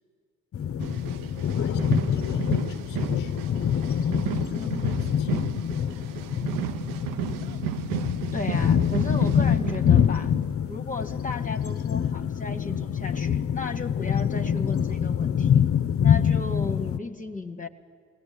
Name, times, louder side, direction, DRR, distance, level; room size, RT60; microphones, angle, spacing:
sound 1, 0.5-17.0, left 8 dB, 40° left, 0.6 m, -25 dB
voice 1, 0.8-3.7 4.5-5.5, left 9 dB, 85° left, 12 dB, 0.6 m, -45 dB
sound 2, 0.8-10.7 11.2-11.4, right 14 dB, 65° right, 0.6 m, -34 dB
voice 2, 8.3-10.3 10.7-15.7 16.0-17.7, left 3 dB, 20° left, 5 dB, 1.0 m, -35 dB
21.0 x 18.0 x 8.3 m, 2.2 s
hypercardioid pair, 45°, 36 cm